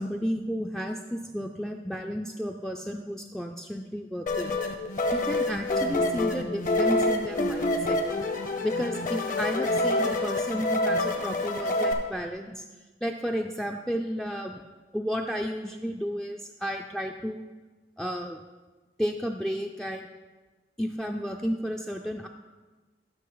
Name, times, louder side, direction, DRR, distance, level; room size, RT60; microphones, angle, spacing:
voice 1, 0.0-4.6 5.1-8.0 8.6-12.6 13.0-14.6 14.9-17.4 18.0-18.4 19.0-20.1 20.8-22.3, equal, ahead, 1 dB, 0.3 m, -32 dB
sound 1, 4.3-11.9, left 2 dB, 50° left, 0.9 m, -27 dB
11.5 x 6.0 x 3.9 m, 1.2 s
head